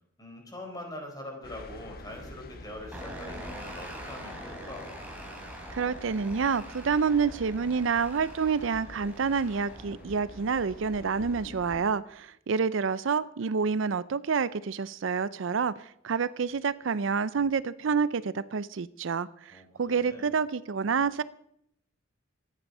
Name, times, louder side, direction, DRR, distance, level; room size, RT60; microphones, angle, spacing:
voice 1, 0.2-4.9 19.5-20.3, left 1 dB, 20° left, 1 dB, 4.4 m, -43 dB
sound 1, 1.4-11.8, left 1 dB, 50° left, 1.5 m, -47 dB
sound 2, 2.9-11.6, right 1 dB, 10° right, 4.2 m, -45 dB
voice 2, 5.7-21.2, right 5 dB, 70° right, 17 dB, 0.5 m, -28 dB
24.5 x 9.8 x 5.5 m, 0.73 s
head